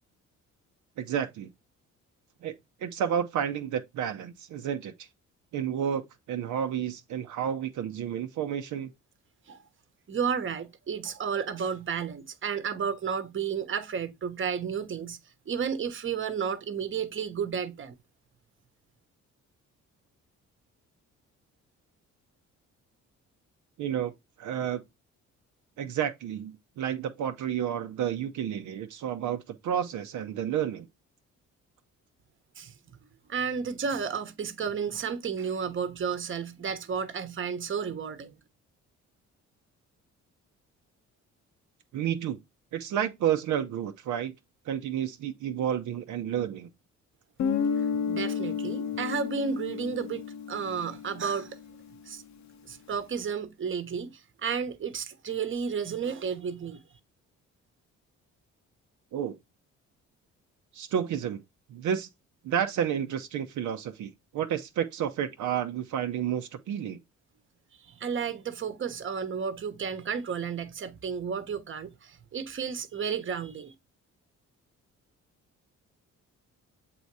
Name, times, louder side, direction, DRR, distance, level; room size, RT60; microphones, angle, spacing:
voice 1, 1.0-1.5 2.4-2.5 2.8-5.1 5.5-8.9 23.8-24.1 24.4-24.8 25.8-30.9 41.9-42.4 42.7-44.3 44.7-46.7 59.1-59.4 60.7-61.4 61.7-62.1 62.4-67.0, right 9 dB, 75° right, 0.7 m, -31 dB
voice 2, 10.1-15.2 15.5-17.9 32.6-32.7 33.3-38.3 48.1-50.2 50.5-51.6 52.1-52.2 52.7-56.8 67.9-73.7, right 6 dB, 40° right, 1.1 m, -32 dB
Guitar, 47.4-52.0, left 6 dB, 65° left, 0.8 m, -32 dB
7.8 x 2.8 x 4.6 m
cardioid pair, 90°, 30 cm